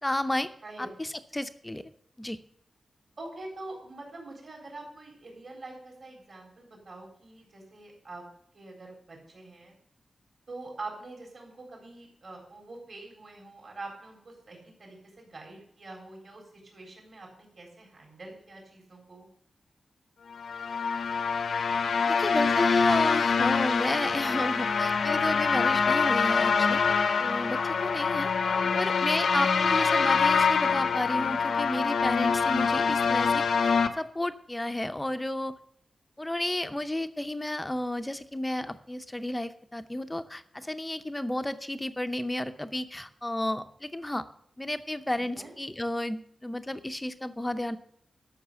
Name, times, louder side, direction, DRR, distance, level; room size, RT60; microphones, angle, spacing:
voice 1, 0.0-0.5 0.8-1.9 2.2-2.4 22.0-26.8 27.2-28.3 28.7-35.5 36.2-44.3 44.6-47.8, left 1 dB, 10° left, 10 dB, 0.6 m, -32 dB
voice 2, 3.2-8.2 8.5-9.7 10.5-19.3 28.5-28.9 45.3-45.5, right 2 dB, 50° right, 0 dB, 4.1 m, -45 dB
sound 1, 20.4-33.9, left 5 dB, 75° left, 0.7 m, -25 dB
12.5 x 6.4 x 6.9 m, 0.66 s
wide cardioid pair, 160°, 0 cm